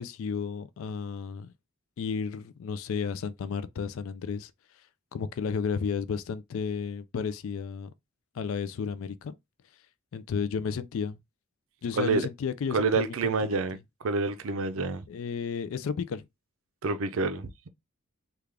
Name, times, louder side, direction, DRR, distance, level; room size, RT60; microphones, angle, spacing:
voice 1, 0.0-1.5 2.0-4.5 5.1-7.9 8.3-9.4 10.1-11.2 11.8-13.6 15.1-16.2, left 6 dB, 70° left, 0.3 m, -33 dB
voice 2, 12.0-12.3 12.7-15.0 16.8-17.7, right 3 dB, 70° right, 0.5 m, -28 dB
3.5 x 2.3 x 3.2 m
head